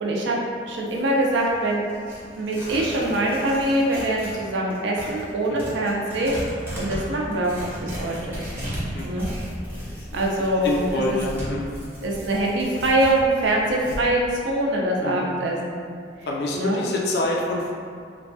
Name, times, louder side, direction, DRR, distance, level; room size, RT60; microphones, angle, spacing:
voice 1, 0.0-0.4 0.7-1.8 2.4-8.4 9.0-9.3 10.1-10.8 11.1-11.2 12.0-15.9 16.5-16.8, right 1 dB, 80° right, -2 dB, 0.4 m, -24 dB
Tearing, 0.7-4.4 4.7-14.0, equal, 10° right, 0.6 m, -35 dB
voice 2, 8.9-9.2 9.7-10.1 10.4-11.7 15.0-15.3 16.3-17.8, left 2 dB, 60° left, -2 dB, 0.4 m, -27 dB
2.9 x 2.2 x 2.6 m, 2.2 s
head